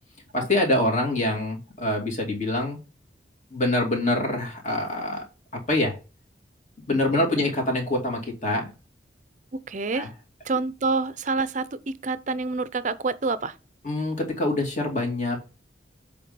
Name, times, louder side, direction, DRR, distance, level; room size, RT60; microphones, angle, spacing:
voice 1, 0.3-2.8 3.5-5.2 5.7-6.0 6.9-8.7 9.9-10.1 13.8-15.4, left 1 dB, 40° left, 2.5 m, -25 dB
voice 2, 9.5-10.1 10.4-13.6, right 3 dB, 45° right, 0.5 m, -27 dB
7.6 x 3.7 x 5.2 m
head